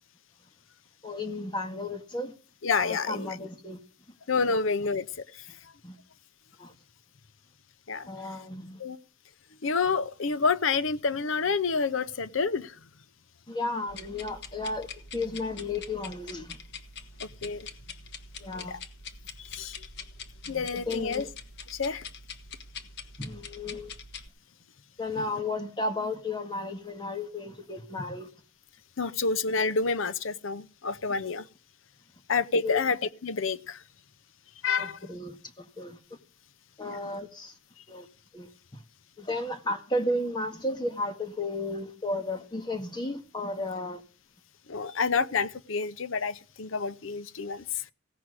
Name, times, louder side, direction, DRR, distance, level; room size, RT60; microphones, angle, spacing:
voice 1, 1.0-2.3 2.9-3.8 4.5-4.6 5.8-6.0 6.6-6.7 8.1-8.8 13.5-16.6 18.4-18.8 20.5-21.3 23.2-24.0 25.0-28.3 32.6-32.8 34.8-36.2 36.8-37.6 37.9-38.1 38.3-38.8 39.2-44.0, left 2 dB, 25° left, 1.9 m, -34 dB
voice 2, 2.6-3.3 4.3-5.1 7.9-8.1 8.8-9.0 9.6-12.8 17.4-17.7 18.5-18.8 19.5-19.8 20.5-21.3 21.7-22.0 25.2-25.3 29.0-31.5 32.3-33.8 34.6-35.0 36.8-37.0 44.7-47.9, left 4 dB, 80° left, 0.7 m, -28 dB
sound 1, 13.9-24.3, left 5 dB, 60° left, 1.3 m, -44 dB
16.5 x 6.1 x 9.6 m
head